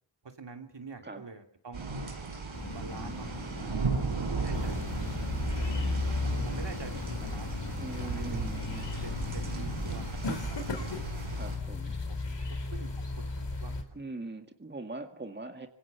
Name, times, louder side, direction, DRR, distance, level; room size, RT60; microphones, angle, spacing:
voice 1, 0.4-1.8 2.7-5.7 6.4-7.6 7.9-8.4 9.0-11.6 12.1-12.4 12.7-13.9, right 4 dB, 60° right, 5 dB, 3.0 m, -47 dB
sound 1, 1.7-11.6, right 4 dB, 75° right, 5.1 m, -36 dB
sound 2, 2.5-10.1, left 4 dB, 35° left, 2.4 m, -43 dB
sound 3, 4.5-13.8, left 3 dB, 60° left, 3.9 m, -35 dB
voice 2, 7.8-8.9 11.3-12.0 13.9-15.7, right 2 dB, 20° right, 6 dB, 2.0 m, -41 dB
25.5 x 20.5 x 7.0 m, 0.63 s
wide cardioid pair, 70°, 47 cm